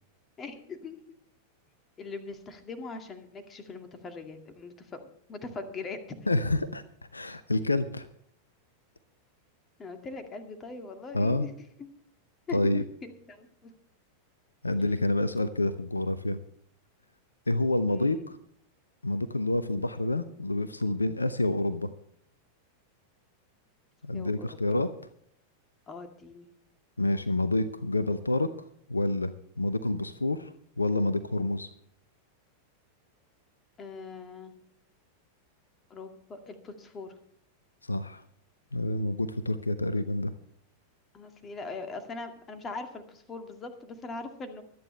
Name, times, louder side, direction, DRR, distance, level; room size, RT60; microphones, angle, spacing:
voice 1, 0.4-1.0 2.0-5.0 5.3-6.0 9.8-11.5 11.8-11.9 12.5-13.7 17.9-18.2 24.1-24.8 25.9-26.5 33.8-34.5 35.9-37.1 41.1-44.6, left 3 dB, 25° left, 6 dB, 2.2 m, -41 dB
voice 2, 6.3-6.8 7.1-8.1 11.1-11.5 12.5-12.8 14.6-16.4 17.5-18.4 19.0-21.9 24.0-24.9 27.0-28.5 28.9-30.5 30.8-31.7 37.8-38.2 38.7-40.3, left 2 dB, 80° left, 15 dB, 0.7 m, -28 dB
24.0 x 9.5 x 3.3 m, 0.67 s
figure-of-eight pair, 90°, 0 cm